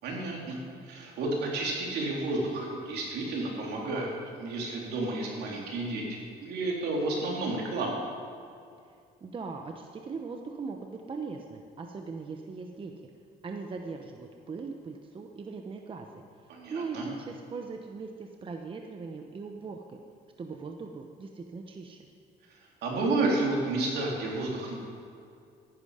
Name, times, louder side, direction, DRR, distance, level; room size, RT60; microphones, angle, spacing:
voice 1, 0.0-8.1 16.5-17.1 22.8-24.7, right 2 dB, 75° right, -2 dB, 3.6 m, -31 dB
voice 2, 9.2-12.9 13.4-20.0 20.4-22.1, right 4 dB, 30° right, 3 dB, 1.0 m, -40 dB
15.5 x 11.0 x 5.1 m, 2.4 s
cardioid pair, 110°, 17 cm